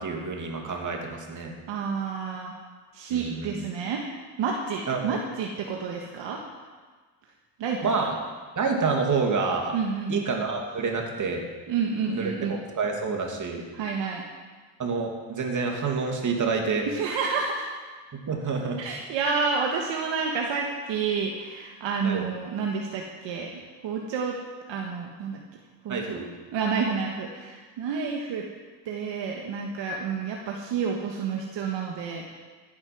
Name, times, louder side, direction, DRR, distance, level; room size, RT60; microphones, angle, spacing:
voice 1, 0.0-1.5 3.1-3.6 4.9-5.2 7.8-8.1 8.6-9.7 10.1-11.4 12.0-13.6 14.8-16.9 18.1-18.8 22.0-22.2 25.9-26.3, right 4 dB, 35° right, 1 dB, 2.7 m, -28 dB
voice 2, 1.7-2.5 2.9-4.0 4.4-6.4 7.6-7.9 9.7-10.2 11.7-12.5 13.7-14.2 16.9-17.7 18.8-23.5 23.8-24.4 24.7-25.4 25.8-26.2 26.5-28.5 28.8-32.3, right 5 dB, 60° right, 0 dB, 1.7 m, -29 dB
14.5 x 8.8 x 6.1 m, 1.4 s
cardioid pair, 105°, 48 cm